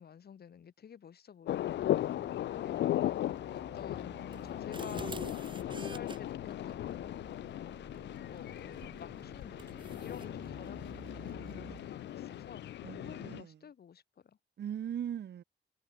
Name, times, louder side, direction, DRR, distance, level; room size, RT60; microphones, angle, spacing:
voice 1, 0.0-3.2 3.5-5.1 5.7-7.3 8.3-14.4, left 8 dB, 65° left, 4.8 m, -51 dB
sound 1, 1.5-13.4, left 13 dB, 85° left, 0.4 m, -37 dB
sound 2, 1.5-12.0, right 7 dB, 55° right, 1.7 m, -54 dB
sound 3, 4.3-6.2 8.8-9.0 9.6-10.3, right 4 dB, 25° right, 0.8 m, -46 dB
voice 2, 11.7-12.5 12.8-13.6 14.6-15.4, right 9 dB, 70° right, 1.5 m, -41 dB
wide cardioid pair, 140°, 18 cm